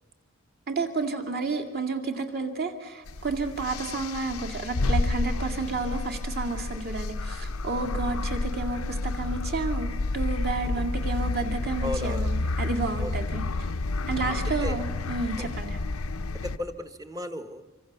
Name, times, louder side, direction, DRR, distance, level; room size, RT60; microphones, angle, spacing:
voice 1, 0.7-13.7 14.1-15.8, right 3 dB, 45° right, 5 dB, 2.6 m, -31 dB
sound 1, 3.1-16.6, left 2 dB, 90° left, 0.7 m, -30 dB
voice 2, 11.8-12.3 13.0-13.1 13.7-13.8 14.6-14.8 15.4-15.5 16.4-17.6, left 1 dB, 15° right, 8 dB, 1.1 m, -35 dB
26.0 x 25.0 x 6.9 m, 1.3 s
head